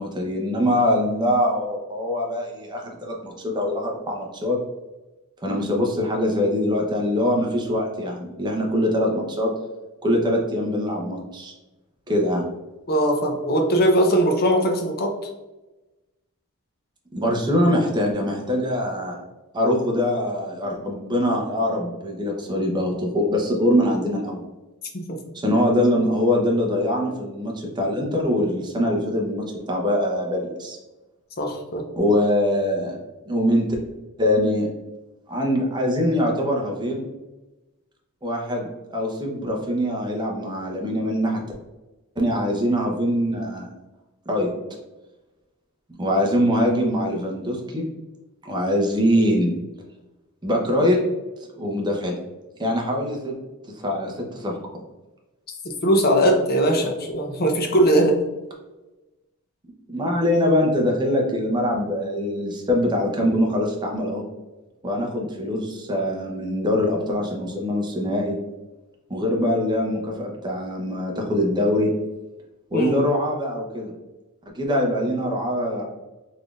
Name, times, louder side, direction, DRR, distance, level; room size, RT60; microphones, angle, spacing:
voice 1, 0.0-4.6 5.4-9.5 10.0-11.5 12.1-12.4 17.1-19.2 19.5-24.4 25.3-30.8 32.0-33.0 33.3-33.7 34.2-34.7 35.3-37.0 38.2-41.4 42.2-43.7 44.3-44.5 46.0-47.9 48.4-49.5 50.4-51.0 51.6-52.1 52.6-53.3 53.7-54.5 59.9-64.2 64.8-68.4 69.1-71.9 72.7-73.9 74.5-75.8, left 1 dB, 20° right, 0 dB, 0.8 m, -23 dB
voice 2, 12.9-15.1 24.9-25.2 31.4-31.8 55.8-58.2 72.7-72.9, right 1 dB, 45° left, 3 dB, 0.6 m, -20 dB
4.1 x 3.3 x 2.4 m, 1.1 s
head